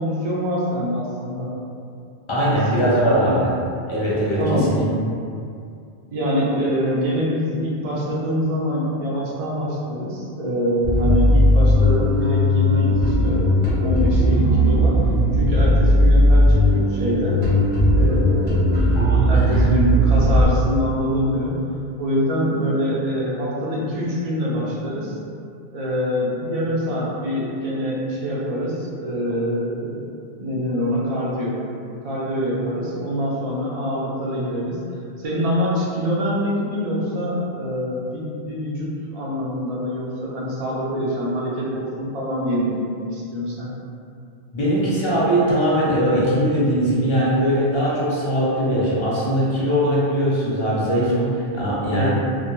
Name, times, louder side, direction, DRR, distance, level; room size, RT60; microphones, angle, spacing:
voice 1, 0.0-1.5 2.8-3.4 4.4-4.7 6.1-15.0 15.3-17.4 17.9-21.6 22.0-25.2 25.7-30.0 30.4-31.6 32.0-34.8 35.2-43.7 51.9-52.1, equal, 65° right, -6 dB, 0.3 m, -25 dB
voice 2, 2.3-3.5 3.9-4.8 18.9-19.6 44.5-52.1, equal, 35° left, -8 dB, 0.5 m, -20 dB
Bass guitar, 10.8-20.4, equal, 40° right, 0.8 m, -17 dB
2.1 x 2.1 x 2.9 m, 2.4 s
omnidirectional pair, 1.1 m